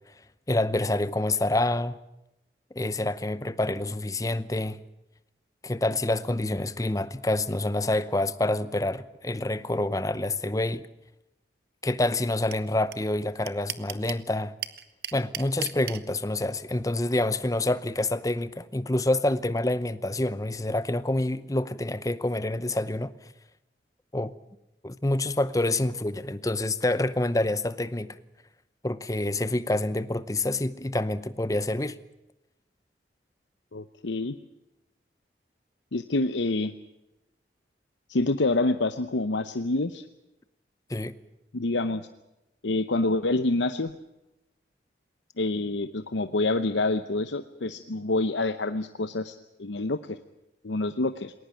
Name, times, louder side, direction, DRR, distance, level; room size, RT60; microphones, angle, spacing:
voice 1, 0.5-2.0 2.7-4.8 5.6-10.9 11.8-14.5 15.1-23.1 24.1-24.3 24.8-28.2 28.8-32.0 40.9-41.2, left 2 dB, 20° left, 0.7 m, -27 dB
sound 1, 12.5-12.6 12.9-13.0 13.2-14.2 14.6-16.0, right 11 dB, 60° right, 1.1 m, -34 dB
voice 2, 33.7-34.3 35.9-36.7 38.1-40.0 41.5-42.1 42.6-43.9 45.4-50.2 50.6-51.3, left 2 dB, 90° left, 0.8 m, -27 dB
20.5 x 19.0 x 9.0 m
head